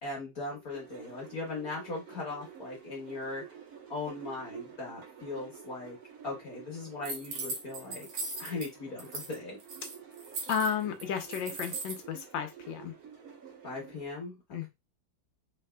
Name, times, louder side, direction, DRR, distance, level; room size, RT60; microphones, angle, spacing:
voice 1, 0.0-3.4 3.9-6.0 6.2-8.1 8.4-9.6 13.6-14.4, left 3 dB, 50° left, 1.4 m, -39 dB
sound 1, 0.7-14.0, right 8 dB, 55° right, 1.3 m, -50 dB
sound 2, 7.0-8.7 9.0-9.4 9.6-12.0, right 3 dB, 75° right, 1.7 m, -38 dB
voice 2, 10.5-12.9 14.5-14.7, left 7 dB, 75° left, 1.5 m, -33 dB
4.5 x 3.3 x 2.2 m
omnidirectional pair, 2.1 m